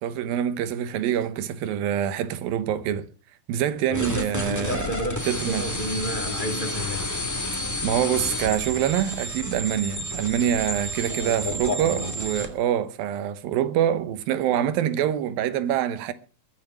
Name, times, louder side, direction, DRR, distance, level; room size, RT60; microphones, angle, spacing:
voice 1, 0.0-3.1 3.5-4.9 5.3-5.6 7.8-16.1, right 10 dB, 85° right, 2.9 m, -25 dB
voice 2, 3.9-7.2 11.1-12.1, left 1 dB, 25° left, 1.1 m, -31 dB
sound 1, 3.9-12.5, equal, 5° left, 2.0 m, -31 dB
21.0 x 7.3 x 5.9 m
omnidirectional pair, 4.1 m